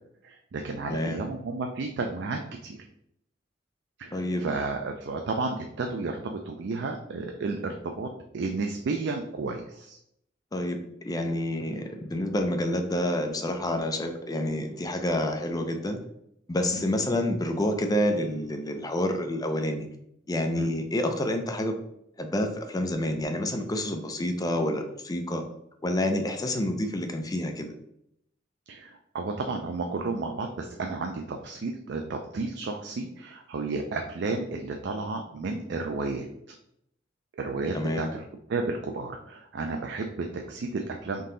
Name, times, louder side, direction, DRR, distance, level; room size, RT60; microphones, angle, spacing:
voice 1, 0.2-2.8 4.0-8.1 8.3-10.0 16.7-16.8 20.6-20.7 28.7-36.3 37.3-38.2 38.5-41.3, right 3 dB, 65° right, 3 dB, 0.4 m, -32 dB
voice 2, 0.9-1.2 4.1-4.4 10.5-16.0 16.5-19.9 20.3-21.7 22.2-25.4 25.8-27.7 37.7-38.1, left 1 dB, 20° left, 5 dB, 0.4 m, -28 dB
3.7 x 2.8 x 3.8 m, 0.75 s
head